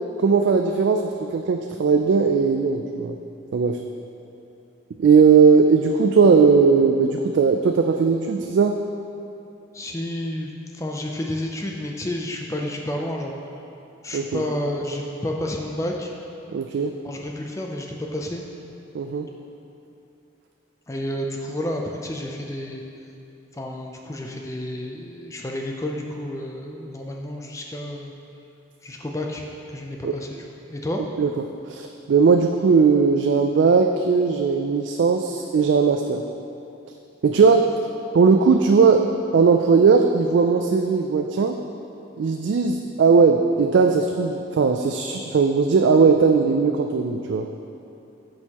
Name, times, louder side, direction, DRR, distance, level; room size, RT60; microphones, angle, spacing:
voice 1, 0.2-3.2 3.5-3.8 5.0-8.8 14.1-14.4 16.5-16.9 18.9-19.3 30.0-30.1 31.2-31.3 31.7-36.2 37.2-37.7 38.1-39.1 39.3-41.6 42.2-47.5, right 5 dB, 70° right, 4 dB, 0.3 m, -18 dB
voice 2, 9.7-13.3 14.0-16.1 17.0-18.4 20.9-22.8 23.5-28.1 28.8-31.0, left 1 dB, 15° left, 1 dB, 0.4 m, -30 dB
10.0 x 6.3 x 2.9 m, 2.8 s
head